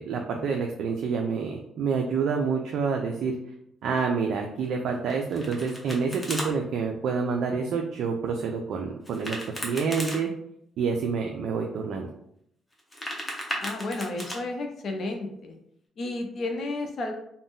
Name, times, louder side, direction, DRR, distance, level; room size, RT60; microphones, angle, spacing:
voice 1, 0.0-3.3 3.8-9.4 9.6-10.3 10.8-12.1, right 5 dB, 75° right, 2 dB, 0.3 m, -28 dB
Domestic sounds home sounds, 5.1-6.5 9.0-10.2 12.7-14.4, equal, 15° left, 0.9 m, -35 dB
voice 2, 13.5-15.5 16.0-17.1, left 2 dB, 55° left, 3 dB, 0.6 m, -32 dB
2.5 x 2.1 x 3.5 m, 0.74 s
cardioid pair, 90°, 0 cm